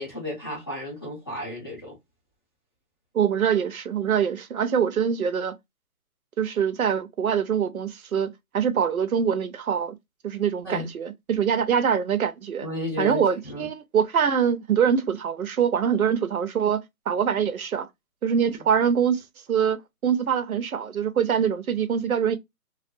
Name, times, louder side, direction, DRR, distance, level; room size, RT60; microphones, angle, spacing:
voice 1, 0.0-2.0 10.6-10.9 12.6-13.7, left 1 dB, 15° left, 0.7 m, -33 dB
voice 2, 3.1-5.5 6.4-10.0 10.2-12.7 13.0-17.9 18.2-19.2 19.5-19.8 20.0-22.4, right 7 dB, 65° right, 0.7 m, -24 dB
2.4 x 2.2 x 2.5 m
hypercardioid pair, 165°, 45 cm